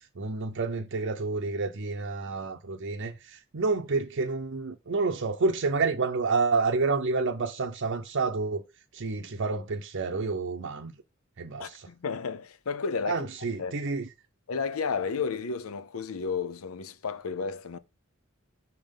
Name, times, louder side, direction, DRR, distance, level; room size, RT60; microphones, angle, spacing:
voice 1, 0.2-8.6 8.9-10.9 11.4-11.9 13.0-14.1, right 4 dB, 60° right, 0.7 m, -29 dB
voice 2, 11.6-13.3 13.6-13.8 14.5-17.8, left 5 dB, 80° left, 0.6 m, -32 dB
6.0 x 3.6 x 5.2 m
head